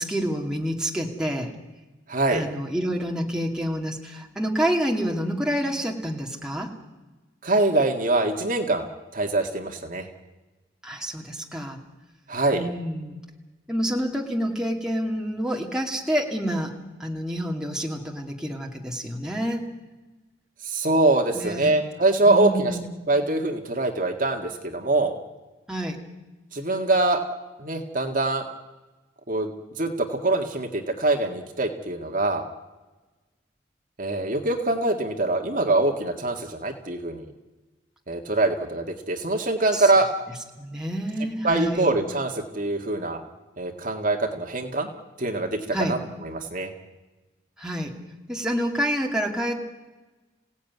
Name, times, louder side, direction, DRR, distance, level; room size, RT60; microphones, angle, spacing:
voice 1, 0.0-1.5 2.3-6.7 10.8-11.8 12.5-13.2 13.7-16.7 17.0-19.7 21.3-21.8 22.3-22.9 25.7-26.0 39.7-39.9 40.6-41.9 45.7-46.0 47.6-47.9 48.3-49.7, equal, 5° right, 0 dB, 2.4 m, -28 dB
voice 2, 2.1-2.4 7.4-10.1 12.3-12.6 20.6-22.7 23.1-25.1 26.5-27.2 27.6-28.5 29.3-29.5 29.8-32.4 34.0-37.3 38.1-40.1 41.4-43.2 43.6-44.9 45.2-46.0 46.2-46.7, right 2 dB, 40° right, 3 dB, 1.9 m, -24 dB
27.5 x 17.0 x 9.5 m, 1.2 s
head